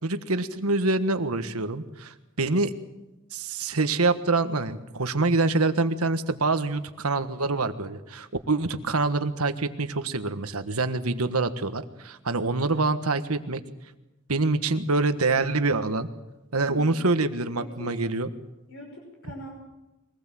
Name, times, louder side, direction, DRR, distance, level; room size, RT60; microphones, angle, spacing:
voice 1, 0.0-2.7 3.3-13.6 14.3-16.1 16.5-18.3, right 3 dB, 90° right, 9 dB, 1.5 m, -26 dB
voice 2, 16.6-17.1 17.6-18.0 18.7-19.5, right 1 dB, 65° left, 1 dB, 5.7 m, -41 dB
23.5 x 19.0 x 7.7 m, 1.0 s
head